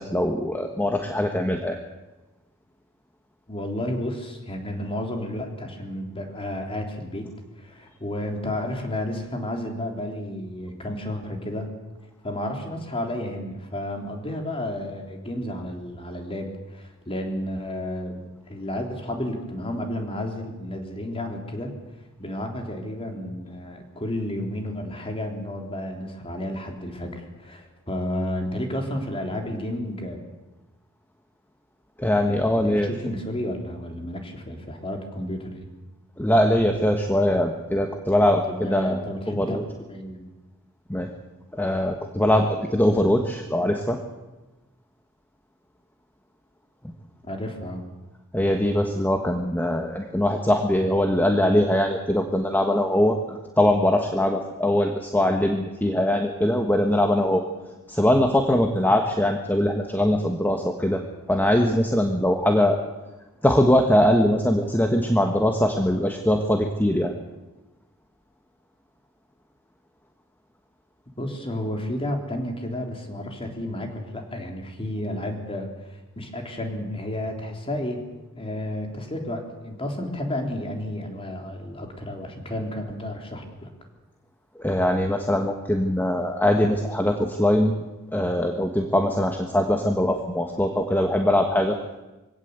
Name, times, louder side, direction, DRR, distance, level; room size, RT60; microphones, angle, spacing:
voice 1, 0.0-1.8 32.0-32.9 36.2-39.6 40.9-41.1 41.5-44.0 46.8-46.9 48.3-57.4 57.9-61.0 61.3-62.8 63.4-67.1 84.5-87.7 88.1-91.8, left 1 dB, 10° left, 4 dB, 1.3 m, -22 dB
voice 2, 3.5-11.7 12.2-18.2 18.5-21.7 22.2-30.2 32.3-35.7 38.5-39.6 39.9-40.2 47.3-47.8 71.2-78.1 78.4-83.7, left 1 dB, 25° left, 3 dB, 3.5 m, -32 dB
23.0 x 17.0 x 8.1 m, 1.1 s
head